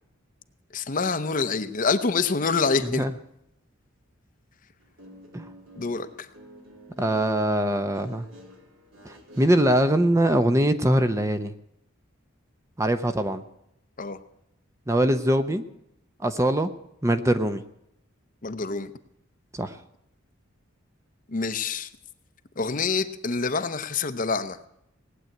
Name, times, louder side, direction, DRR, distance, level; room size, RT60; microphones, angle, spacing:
voice 1, 0.7-3.0 5.8-6.3 14.0-14.2 18.4-18.9 21.3-21.9 22.6-24.6, left 4 dB, 40° left, 10 dB, 0.8 m, -26 dB
Guitar, 4.8-10.1, equal, 75° right, 3.0 m, -49 dB
voice 2, 7.0-8.3 9.0-11.5 12.8-13.4 14.9-15.6 16.2-16.7 17.0-17.6 19.5-19.8, right 1 dB, 15° right, 9 dB, 0.7 m, -22 dB
18.5 x 8.0 x 9.1 m, 0.79 s
head